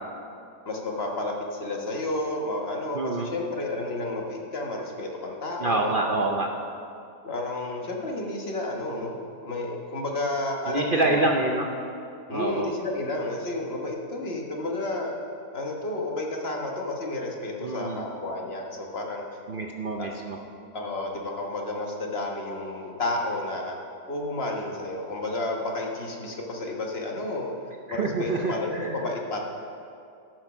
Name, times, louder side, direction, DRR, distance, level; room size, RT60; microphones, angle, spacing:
voice 1, 0.6-6.3 7.2-9.1 9.4-11.3 12.3-15.2 15.5-19.2 20.0-20.1 20.7-23.8 24.1-27.5 27.9-29.4, left 2 dB, 40° left, 0 dB, 1.4 m, -31 dB
voice 2, 2.9-3.3 5.6-6.5 10.7-11.7 12.3-12.7 17.6-18.0 19.5-20.4 27.9-28.9, right 2 dB, 70° right, 1 dB, 0.5 m, -26 dB
13.0 x 6.2 x 6.0 m, 2.4 s
omnidirectional pair, 1.8 m